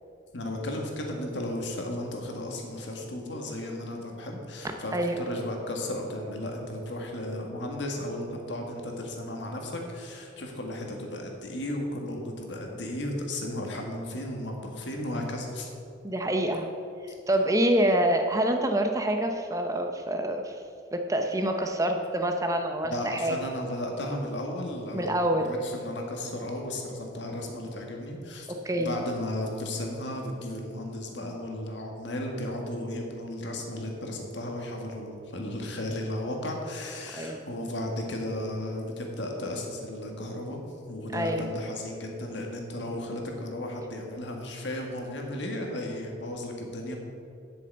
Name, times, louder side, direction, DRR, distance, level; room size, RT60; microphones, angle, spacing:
voice 1, 0.3-15.7 22.8-28.5 28.8-40.6 40.9-47.0, left 1 dB, 70° left, 1 dB, 1.7 m, -34 dB
voice 2, 16.0-16.7 17.0-20.6 20.9-23.4 24.9-25.5 28.5-28.9 37.1-37.4 41.1-41.5, right 1 dB, 15° right, 5 dB, 0.6 m, -26 dB
8.1 x 6.9 x 7.9 m, 2.5 s
head